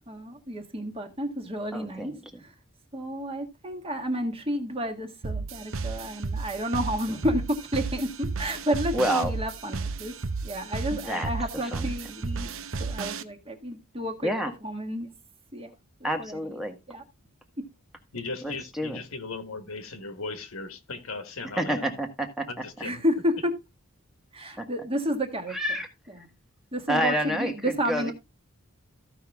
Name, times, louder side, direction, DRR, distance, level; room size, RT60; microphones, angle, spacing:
voice 1, 0.1-2.1 2.4-2.5 2.9-10.2 10.4-12.5 12.8-14.3 14.6-15.1 15.5-15.7 16.0-16.6 16.9-17.0 22.8-23.5 24.3-25.6 26.1-26.3 26.7-28.1, equal, 25° right, 1.6 m, -31 dB
voice 2, 1.7-2.4 8.9-9.3 10.9-11.3 11.7-11.9 14.2-14.5 16.0-16.8 18.4-19.0 21.6-22.5 24.6-24.7 25.5-25.9 26.9-28.1, equal, ahead, 1.4 m, -28 dB
sound 1, 5.2-13.2, right 4 dB, 70° right, 0.8 m, -33 dB
voice 3, 18.1-22.0 22.5-23.0, left 3 dB, 75° left, 1.6 m, -37 dB
14.5 x 5.6 x 3.5 m
head